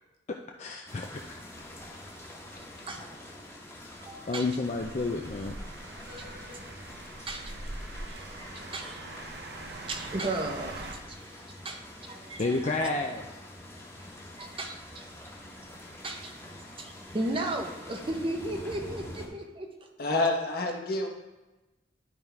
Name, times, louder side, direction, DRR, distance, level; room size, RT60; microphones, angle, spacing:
voice 1, 0.3-1.4 2.8-2.9 4.3-5.6 12.4-13.2, left 3 dB, 40° left, 2 dB, 0.5 m, -31 dB
sound 1, 0.9-19.3, left 1 dB, 15° left, 1.2 m, -46 dB
voice 2, 2.5-3.1 4.0-4.5 6.1-9.1 9.9-12.7 14.4-15.1 15.5-19.9, right 2 dB, 30° right, 3 dB, 0.8 m, -37 dB
sound 2, 4.6-11.0, right 2 dB, 65° right, 0.8 m, -42 dB
voice 3, 20.0-21.1, left 2 dB, 60° left, 1 dB, 1.2 m, -27 dB
11.0 x 3.7 x 4.6 m, 1.1 s
head